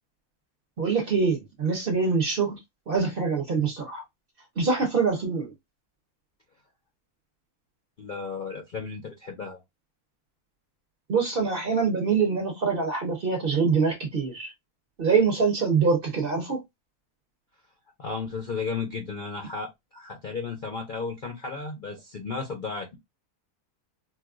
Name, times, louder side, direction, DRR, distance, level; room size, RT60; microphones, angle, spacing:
voice 1, 0.8-2.6 2.9-4.0 4.6-5.5 11.1-14.5 15.0-16.6, right 5 dB, 45° right, 0.8 m, -24 dB
voice 2, 8.0-9.6 18.0-22.9, left 4 dB, 55° left, 0.5 m, -34 dB
4.1 x 2.3 x 2.4 m
omnidirectional pair, 1.6 m